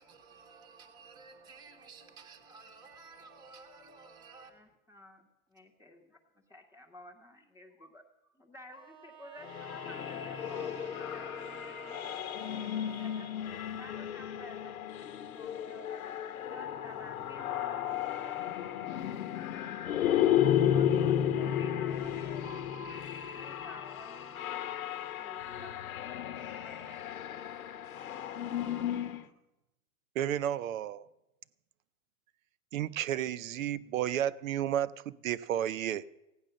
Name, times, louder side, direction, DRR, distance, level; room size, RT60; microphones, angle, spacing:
voice 1, 0.0-4.7, right 4 dB, 10° right, 0.9 m, -53 dB
voice 2, 4.5-8.0 8.3-12.2 13.0-15.9 16.4-19.7 20.7-24.4 25.2-25.8 26.6-27.6, left 1 dB, 5° left, 0.4 m, -53 dB
Bowed string instrument, 8.7-13.5, right 9 dB, 35° right, 1.0 m, -52 dB
sound 1, 9.4-29.3, left 10 dB, 85° left, 1.0 m, -33 dB
voice 3, 30.2-31.1 32.7-36.0, right 11 dB, 65° right, 0.7 m, -32 dB
15.5 x 9.6 x 6.4 m
hypercardioid pair, 160°, 43 cm